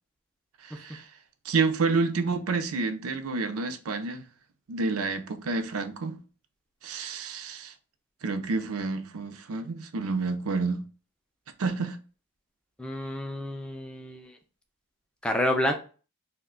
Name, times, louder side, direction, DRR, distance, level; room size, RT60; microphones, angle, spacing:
voice 1, 0.6-1.1 1.4-4.2 4.7-6.2 6.8-7.7 8.2-10.8 11.6-12.0, right 4 dB, 80° right, 0.5 m, -29 dB
voice 2, 12.8-14.3 15.2-15.7, left 1 dB, 5° left, 0.4 m, -29 dB
2.6 x 2.2 x 3.6 m
head